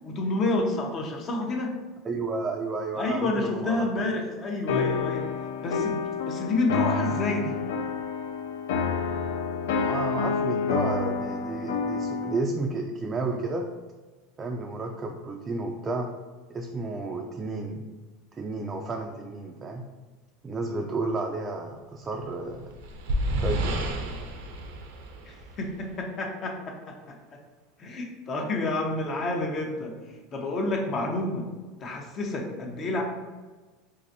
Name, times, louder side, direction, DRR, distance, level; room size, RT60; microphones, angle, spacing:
voice 1, 0.0-1.7 3.0-5.3 5.6-7.6 25.3-27.2 27.8-29.9 30.3-31.5 31.8-33.0, left 2 dB, 40° left, 2 dB, 0.7 m, -29 dB
voice 2, 2.0-3.9 9.7-13.7 14.4-16.1 16.5-17.8 18.3-19.8 20.4-22.7 23.4-23.8, right 3 dB, 25° right, 1 dB, 0.3 m, -32 dB
sound 1, 4.7-12.5, left 5 dB, 80° left, 0.3 m, -28 dB
sound 2, 22.3-25.9, right 1 dB, 80° right, 0.5 m, -30 dB
3.9 x 2.5 x 2.6 m, 1.3 s
supercardioid pair, 105°, 0 cm